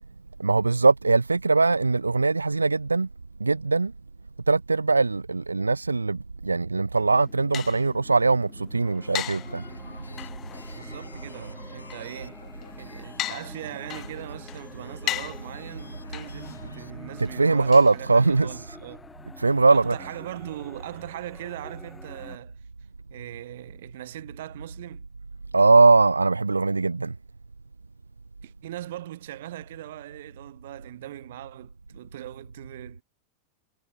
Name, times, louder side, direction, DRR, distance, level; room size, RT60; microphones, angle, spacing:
voice 1, 0.4-3.1 3.4-3.9 4.5-9.6 17.2-18.6 19.4-20.0 25.5-27.1, right 3 dB, 80° right, 0.7 m, -21 dB
sound 1, 6.9-18.6, left 14 dB, 35° left, 1.8 m, -39 dB
sound 2, 8.7-22.4, left 4 dB, 15° left, 5.7 m, -49 dB
sound 3, 8.9-16.9, left 3 dB, 80° left, 4.5 m, -53 dB
voice 2, 10.7-12.4 12.8-19.1 19.7-22.6 23.1-25.1 28.4-33.0, right 14 dB, 55° right, 5.2 m, -40 dB
figure-of-eight pair, 90°, 0 cm